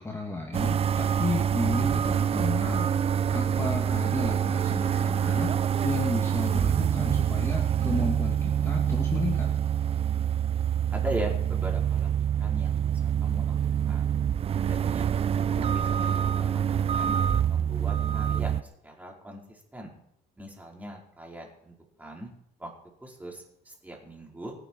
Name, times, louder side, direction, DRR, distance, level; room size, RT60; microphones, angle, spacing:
voice 1, 0.0-2.9 3.3-9.5, left 3 dB, 15° left, 0 dB, 2.5 m, -33 dB
sound 1, 0.5-18.6, right 9 dB, 35° right, 0.5 m, -26 dB
voice 2, 10.9-12.1 12.4-13.6 13.8-14.2 14.6-15.1 15.5-16.6 16.9-17.2 17.5-18.5 18.8-19.9 20.4-22.3 22.6-22.7 23.0-24.5, equal, 10° right, -1 dB, 4.8 m, -39 dB
25.5 x 9.4 x 4.7 m, 0.75 s
cardioid pair, 110°, 17 cm